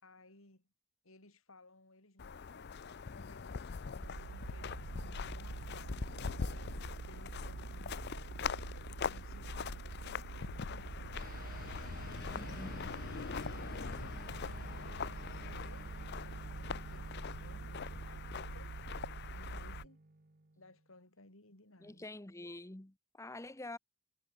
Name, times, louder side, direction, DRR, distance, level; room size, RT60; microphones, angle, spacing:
voice 1, 0.0-0.7 1.0-20.0 20.6-22.1, left 2 dB, 85° left, 5.3 m, -61 dB
sound 1, 2.2-19.8, left 5 dB, 55° left, 0.5 m, -43 dB
sound 2, 4.0-19.9, right 4 dB, 65° right, 0.5 m, -46 dB
sound 3, 11.1-20.9, right 2 dB, 45° right, 1.2 m, -54 dB
voice 2, 12.3-12.9 21.8-23.8, left 2 dB, 15° left, 0.9 m, -47 dB
head